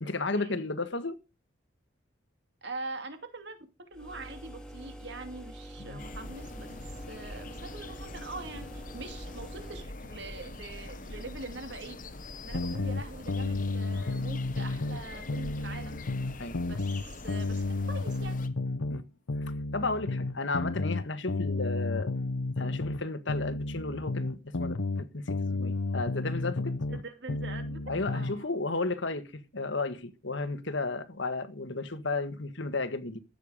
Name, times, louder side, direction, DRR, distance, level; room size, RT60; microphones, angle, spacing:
voice 1, 0.0-1.2 5.8-6.0 16.4-16.6 18.9-19.0 19.7-22.1 22.6-24.8 25.1-26.7 27.9-33.2, left 3 dB, 65° left, 1.5 m, -33 dB
voice 2, 2.6-3.6 3.9-6.7 7.1-8.7 8.9-12.0 12.4-16.0 16.6-18.4 26.9-27.8 28.1-28.5, right 2 dB, 55° right, 2.6 m, -43 dB
sound 1, 3.9-9.9, right 1 dB, 5° left, 2.2 m, -46 dB
sound 2, 6.0-18.5, left 2 dB, 40° left, 1.2 m, -44 dB
sound 3, 12.5-15.0 15.3-19.0 19.3-23.0 23.3-27.0 27.3-28.4, left 3 dB, 90° left, 0.8 m, -32 dB
14.0 x 9.1 x 5.0 m
head